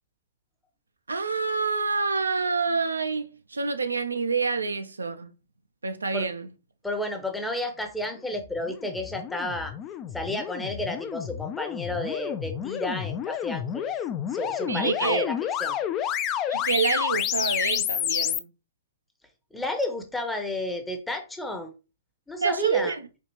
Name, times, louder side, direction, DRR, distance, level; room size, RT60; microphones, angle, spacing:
voice 1, 1.1-5.3 5.8-6.5 14.7-15.3 16.5-18.5 22.4-23.1, right 4 dB, 85° right, 0.4 m, -27 dB
voice 2, 6.8-9.7 10.1-13.9 14.3-15.3 15.6-15.8 19.5-21.7 22.3-23.0, left 1 dB, 5° left, 0.7 m, -31 dB
sound 1, 8.4-18.4, left 10 dB, 30° left, 0.3 m, -30 dB
4.4 x 2.4 x 3.0 m
figure-of-eight pair, 115°, 0 cm